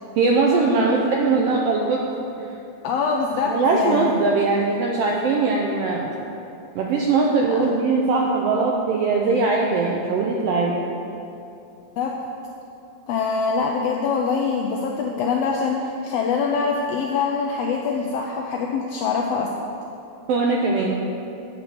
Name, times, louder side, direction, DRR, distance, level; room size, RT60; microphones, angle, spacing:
voice 1, 0.2-2.0 2.4-2.5 3.5-6.1 6.7-10.8 20.3-20.9, right 3 dB, 80° right, -1 dB, 1.4 m, -21 dB
voice 2, 2.8-4.2 7.5-7.7 12.0-12.1 13.1-19.5, left 5 dB, 85° left, 0 dB, 1.4 m, -24 dB
8.8 x 5.0 x 6.7 m, 2.8 s
omnidirectional pair, 3.4 m